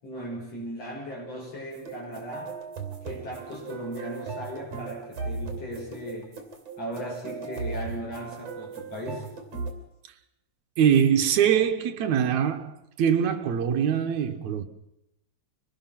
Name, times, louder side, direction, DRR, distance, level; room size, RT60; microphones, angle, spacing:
voice 1, 0.0-2.6 3.0-6.4 6.8-9.3, equal, 55° left, 7.2 m, -37 dB
sound 1, 1.7-9.7, right 4 dB, 60° right, 4.2 m, -37 dB
voice 2, 10.8-12.7 13.0-14.6, right 8 dB, 80° right, 2.6 m, -23 dB
25.0 x 19.0 x 5.9 m
omnidirectional pair, 3.3 m